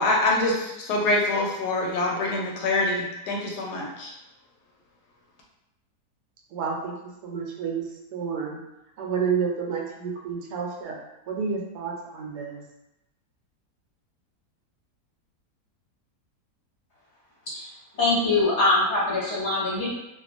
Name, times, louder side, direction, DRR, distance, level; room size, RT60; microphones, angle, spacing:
voice 1, 0.0-4.1, left 2 dB, 80° left, -1 dB, 1.2 m, -25 dB
voice 2, 6.5-6.9 7.2-7.9 8.1-8.6 9.0-11.0 11.3-12.6, right 6 dB, 85° right, -1 dB, 1.2 m, -29 dB
voice 3, 18.0-19.9, left 2 dB, 55° left, -7 dB, 0.9 m, -23 dB
2.8 x 2.3 x 2.4 m, 0.90 s
omnidirectional pair, 1.7 m